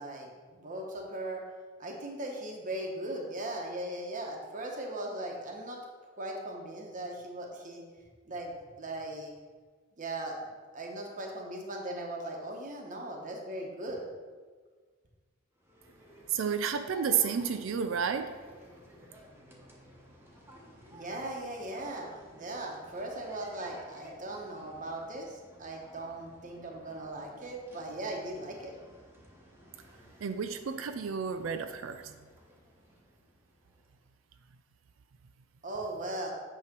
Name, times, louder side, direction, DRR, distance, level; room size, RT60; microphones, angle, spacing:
voice 1, 0.0-1.4 1.8-5.8 6.2-7.8 8.3-9.3 10.0-10.3 10.7-14.1 20.9-28.7 35.6-36.3, right 1 dB, 40° right, 0 dB, 1.0 m, -38 dB
sound 1, 15.6-34.0, equal, 10° right, 1.0 m, -54 dB
voice 2, 16.3-18.4 30.2-32.0, right 7 dB, 75° right, 9 dB, 0.4 m, -31 dB
8.7 x 3.1 x 5.9 m, 1.5 s
head